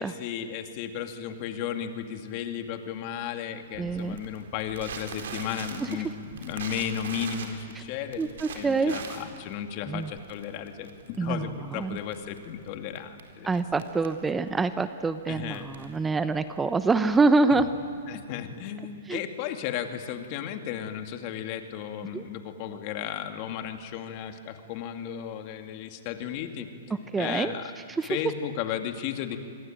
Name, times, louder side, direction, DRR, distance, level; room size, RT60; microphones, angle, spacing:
voice 1, 0.0-8.2 8.5-10.9 11.2-13.5 15.3-15.7 18.1-26.7 27.2-27.7 28.0-29.4, left 9 dB, 45° left, 6 dB, 2.5 m, -34 dB
Crackle, 3.7-17.9, right 6 dB, 70° right, 4.3 m, -43 dB
voice 2, 3.8-4.2 5.8-5.9 8.2-8.9 9.9-10.1 11.2-11.5 11.8-12.0 13.4-17.7 19.1-19.2 22.1-22.2 27.1-27.5 28.0-28.2, right 3 dB, 10° right, 11 dB, 0.8 m, -25 dB
26.5 x 22.5 x 9.0 m, 2.4 s
hypercardioid pair, 135°, 0 cm